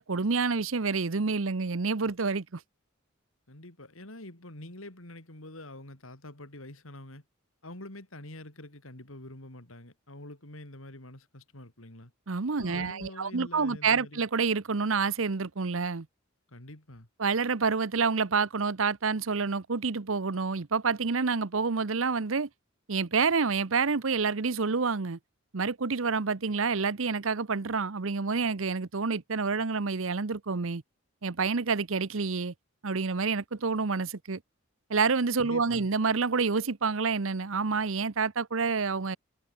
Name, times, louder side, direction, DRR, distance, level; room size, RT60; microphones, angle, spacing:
voice 1, 0.0-2.6 12.3-16.1 17.2-22.5 22.9-25.2 25.5-30.8 31.2-32.5 32.8-34.4 34.9-39.2, right 4 dB, 75° right, 0.9 m, -28 dB
voice 2, 3.5-7.2 7.6-12.1 12.6-14.2 16.5-17.1 35.4-35.9, left 1 dB, 85° left, 4.6 m, -46 dB
head